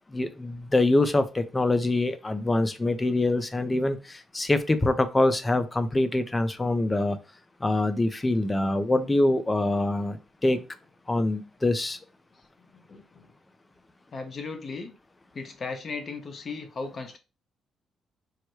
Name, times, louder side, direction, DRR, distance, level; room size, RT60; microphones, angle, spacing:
voice 1, 0.1-7.2 7.6-10.6 11.1-12.0, left 2 dB, 20° left, 0.6 m, -24 dB
voice 2, 12.3-13.3 14.1-14.9 15.3-17.2, left 4 dB, 45° left, 1.0 m, -37 dB
4.7 x 2.2 x 4.6 m
cardioid pair, 90°, 0 cm